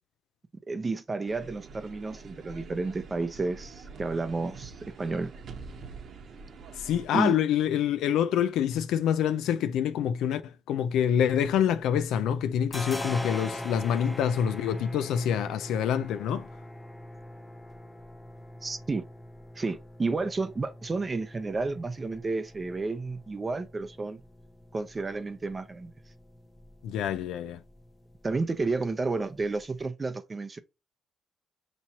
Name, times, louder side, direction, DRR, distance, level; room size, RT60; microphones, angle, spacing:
voice 1, 0.7-5.3 7.1-7.4 18.6-19.0 19.5-24.2 24.7-25.9 28.2-30.6, right 3 dB, 30° right, 0.5 m, -31 dB
sound 1, 1.3-7.1, right 4 dB, 60° right, 0.9 m, -45 dB
voice 2, 6.8-16.5 26.8-27.6, left 9 dB, 85° left, 0.3 m, -26 dB
sound 2, 11.1-12.1 12.3-29.8, left 1 dB, 15° left, 0.6 m, -43 dB
5.8 x 3.0 x 2.8 m
cardioid pair, 90°, 0 cm